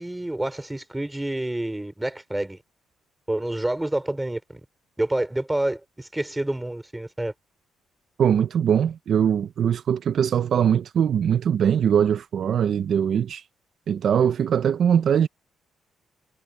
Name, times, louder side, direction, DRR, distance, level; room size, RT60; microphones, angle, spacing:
voice 1, 0.0-2.6 3.3-4.4 5.0-7.3, right 1 dB, 10° right, 4.3 m, -28 dB
voice 2, 8.2-13.4 13.9-15.3, right 8 dB, 60° right, 0.7 m, -21 dB
cardioid pair, 90°, 0 cm